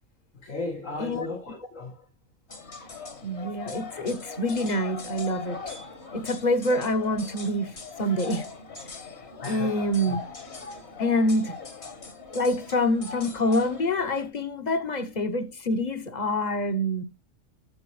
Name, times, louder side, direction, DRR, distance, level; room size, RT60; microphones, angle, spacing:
voice 1, 0.4-2.1 9.4-9.9, left 2 dB, 80° left, 2.2 m, -35 dB
sound 1, 2.5-14.3, left 4 dB, 60° left, 2.2 m, -41 dB
voice 2, 3.2-5.6 6.1-8.4 9.4-10.2 11.0-11.6 12.3-17.0, left 1 dB, 35° left, 1.1 m, -26 dB
14.0 x 5.6 x 3.2 m
omnidirectional pair, 1.3 m